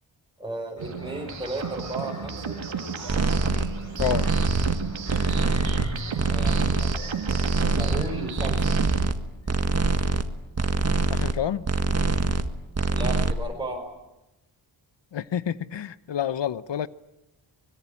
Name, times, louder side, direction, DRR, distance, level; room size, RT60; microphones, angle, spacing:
voice 1, 0.4-2.6 6.3-7.1 7.8-8.6 12.9-13.9, right 1 dB, 10° right, -1 dB, 5.5 m, -35 dB
sound 1, 0.8-8.5, left 1 dB, 35° left, 7.6 m, -41 dB
sound 2, 0.8-9.1, right 8 dB, 75° right, 2.1 m, -33 dB
sound 3, 3.1-3.7 4.0-4.8 5.1-5.9 6.2-7.0 7.3-8.1 8.4-9.2 9.5-10.2 10.6-11.4 11.6-12.5 12.7-13.3, right 3 dB, 30° right, 1.7 m, -24 dB
voice 2, 4.0-4.3 11.1-11.6 15.1-16.9, left 9 dB, 65° left, 16 dB, 0.9 m, -28 dB
24.0 x 21.5 x 9.9 m, 0.94 s
cardioid pair, 80°, 46 cm